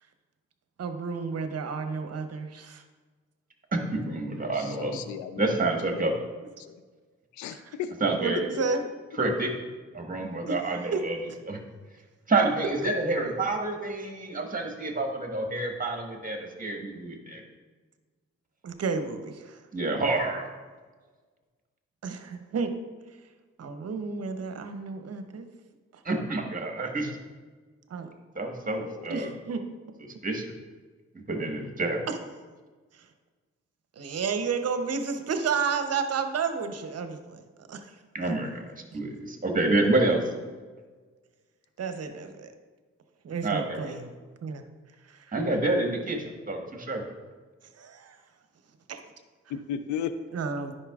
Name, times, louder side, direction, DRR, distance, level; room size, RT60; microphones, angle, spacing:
voice 1, 0.8-2.8 7.5-7.8 8.2-8.8 10.4-10.6 10.9-11.0 12.8-12.9 18.6-19.6 22.0-22.7 23.6-25.5 25.9-26.0 27.9-28.1 29.1-29.6 32.1-32.2 32.9-33.1 34.0-37.4 37.7-38.0 38.9-39.0 41.8-42.5 43.2-44.1 44.4-44.6 45.0-45.3 47.8-48.2 48.9-49.0 50.3-50.7, right 5 dB, 55° right, 7 dB, 0.8 m, -31 dB
voice 2, 3.7-4.9 5.4-6.1 8.0-8.4 9.2-9.5 9.9-11.2 11.5-11.6 12.3-17.4 19.7-20.5 26.0-27.1 28.3-29.3 30.2-30.5 31.1-32.0 38.1-40.2 43.4-44.0 45.3-47.0, right 2 dB, 30° right, 2 dB, 1.5 m, -28 dB
voice 3, 4.6-6.1 6.7-6.8 7.4-7.9 8.5-8.6 28.7-29.3 49.5-50.1, left 9 dB, 85° left, 11 dB, 0.4 m, -35 dB
9.8 x 5.5 x 2.4 m, 1.4 s
supercardioid pair, 50°, 29 cm